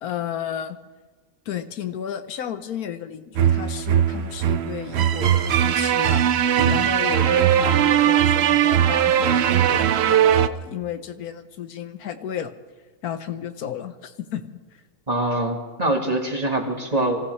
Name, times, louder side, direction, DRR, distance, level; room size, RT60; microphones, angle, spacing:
voice 1, 0.0-0.8 1.5-6.3 6.7-12.5 13.0-14.4, left 9 dB, 85° left, 9 dB, 1.4 m, -33 dB
sound 1, 3.3-10.5, right 10 dB, 60° right, 0.7 m, -19 dB
voice 2, 15.1-17.2, right 1 dB, 25° right, 2 dB, 1.8 m, -24 dB
26.0 x 15.5 x 3.2 m, 1.4 s
omnidirectional pair, 1.5 m